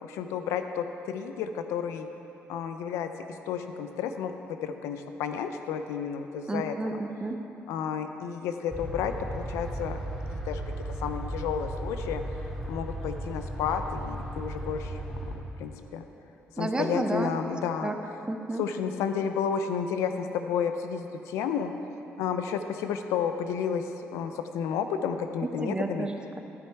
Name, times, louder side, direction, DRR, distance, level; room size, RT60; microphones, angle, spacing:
voice 1, 0.0-2.1 2.5-6.7 7.7-10.0 10.3-10.6 11.0-12.2 12.7-16.1 16.6-17.9 18.6-21.7 22.1-26.1, left 7 dB, 90° left, 7 dB, 0.5 m, -31 dB
voice 2, 6.5-7.4 16.6-17.3 17.8-18.0 18.3-18.6 25.4-26.4, right 2 dB, 20° right, 5 dB, 0.8 m, -31 dB
sound 1, 8.7-15.4, right 1 dB, 5° left, 1.9 m, -35 dB
12.0 x 6.2 x 4.6 m, 2.9 s
cardioid pair, 80°, 5 cm